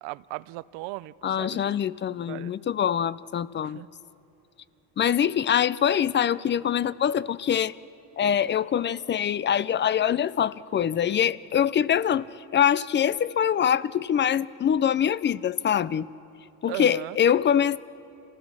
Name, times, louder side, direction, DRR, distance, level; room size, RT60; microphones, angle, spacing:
voice 1, 0.0-1.7 2.3-2.5 3.6-3.9 16.6-17.2, right 20 dB, 80° right, 18 dB, 0.6 m, -37 dB
voice 2, 1.2-3.8 5.0-7.8 8.2-12.3 12.5-16.1 16.6-17.8, left 9 dB, 25° left, 19 dB, 0.4 m, -24 dB
27.0 x 16.5 x 6.4 m, 2.8 s
supercardioid pair, 95°, 45 cm